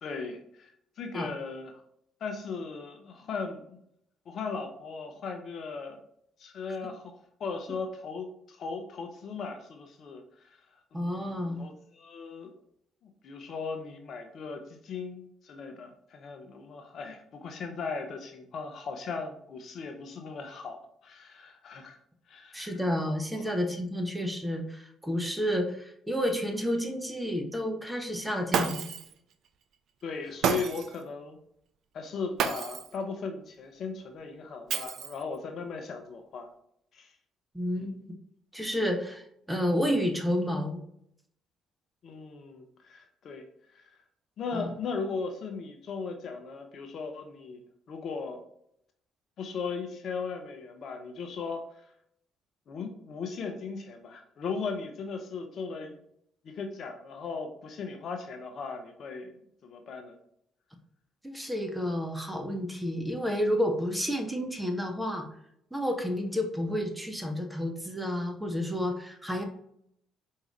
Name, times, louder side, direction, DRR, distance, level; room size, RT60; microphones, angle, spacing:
voice 1, 0.0-1.8 2.2-3.8 4.3-6.0 6.4-10.6 10.9-12.5 13.0-22.0 22.3-22.8 23.3-23.5 30.0-31.4 31.9-36.5 36.9-37.1 37.8-37.9 38.8-38.9 42.0-43.9 44.4-47.6 47.9-48.4 49.4-51.9 52.7-56.0 56.4-60.2, left 5 dB, 55° left, 5 dB, 0.6 m, -38 dB
voice 2, 10.9-11.6 22.5-28.8 37.5-38.1 38.5-39.2 39.5-40.8 44.5-44.7 61.2-65.3 65.7-69.4, equal, 5° right, 4 dB, 1.0 m, -30 dB
Shatter, 28.5-29.1 30.4-31.0 32.4-33.0 34.7-35.4, right 7 dB, 60° right, 0.4 m, -30 dB
4.7 x 2.7 x 3.1 m, 0.71 s
hypercardioid pair, 50°, 0 cm